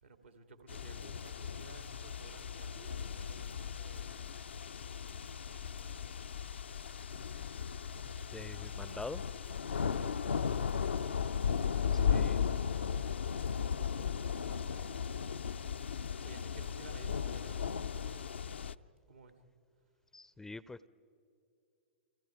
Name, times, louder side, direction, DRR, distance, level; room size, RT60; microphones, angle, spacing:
voice 1, 0.0-4.2 5.3-6.1 7.9-11.1 11.5-18.3 19.1-19.4, right 4 dB, 85° right, 7 dB, 2.4 m, -57 dB
sound 1, 0.7-18.8, left 7 dB, 75° left, 0.5 m, -36 dB
voice 2, 8.3-9.2 12.0-12.4 20.1-20.9, left 3 dB, 5° left, 18 dB, 0.5 m, -44 dB
30.0 x 26.0 x 4.9 m, 2.7 s
figure-of-eight pair, 105°, 6 cm